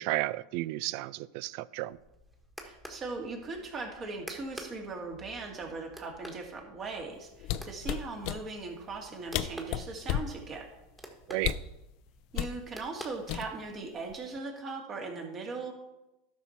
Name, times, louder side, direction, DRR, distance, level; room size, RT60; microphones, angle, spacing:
voice 1, 0.0-2.0 11.3-11.5, right 17 dB, 60° right, 21 dB, 0.3 m, -33 dB
sound 1, 1.9-13.8, equal, 5° right, 1.7 m, -50 dB
voice 2, 2.6-10.7 12.3-15.7, right 3 dB, 35° right, 2 dB, 2.2 m, -39 dB
sound 2, 7.4-8.4 9.1-9.2 9.3-10.3 11.4-11.7 12.3-12.6 13.3-13.8 14.1-14.4, left 11 dB, 55° left, 0.5 m, -32 dB
12.5 x 5.7 x 4.4 m, 0.95 s
hypercardioid pair, 90°, 0 cm